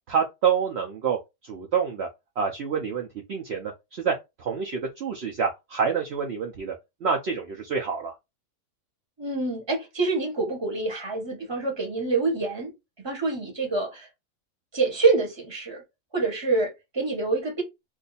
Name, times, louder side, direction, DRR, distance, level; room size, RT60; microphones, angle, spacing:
voice 1, 0.1-1.2 1.4-2.1 2.4-6.7 7.0-8.1, right 6 dB, 65° right, 0.6 m, -27 dB
voice 2, 9.2-12.7 13.0-14.1 14.7-15.8 16.1-17.6, right 3 dB, 20° right, 1.0 m, -26 dB
2.6 x 2.4 x 3.9 m
omnidirectional pair, 1.7 m